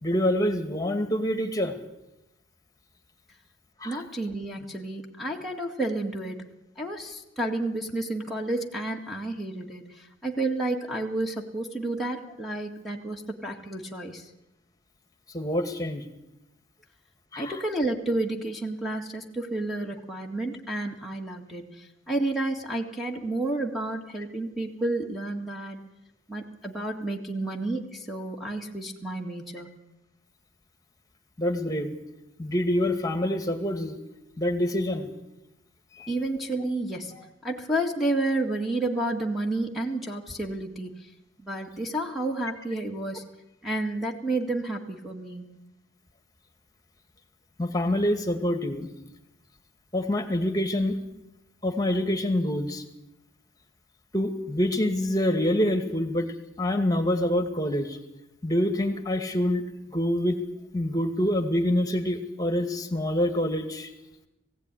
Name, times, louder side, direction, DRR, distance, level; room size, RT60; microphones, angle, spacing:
voice 1, 0.0-1.7 3.8-4.0 15.3-16.1 17.3-17.6 31.4-32.0 32.4-34.0 34.4-35.1 36.0-36.1 47.6-48.9 49.9-51.0 51.6-52.8 54.1-56.3 56.6-58.0 58.4-59.6 59.9-60.4 60.7-63.9, left 1 dB, 20° left, 7 dB, 2.1 m, -26 dB
voice 2, 3.8-6.4 6.8-14.3 17.4-25.8 26.3-29.7 36.1-37.1 37.4-41.1 41.4-43.2 43.6-45.5, right 2 dB, ahead, 2 dB, 2.0 m, -31 dB
20.5 x 16.5 x 9.9 m, 0.93 s
head